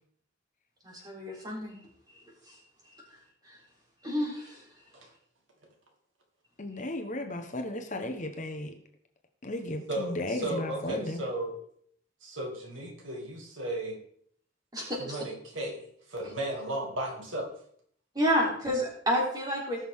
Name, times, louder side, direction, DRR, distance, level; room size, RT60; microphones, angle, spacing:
voice 1, 0.8-1.7 4.0-4.5 14.7-15.2 18.2-19.8, equal, 20° right, -3 dB, 3.6 m, -29 dB
voice 2, 6.6-8.8 9.4-11.2, left 1 dB, 40° left, 5 dB, 1.2 m, -35 dB
voice 3, 9.9-11.6 12.2-14.0 14.9-17.5, right 1 dB, 75° right, 1 dB, 2.7 m, -35 dB
18.5 x 6.3 x 3.8 m, 0.63 s
head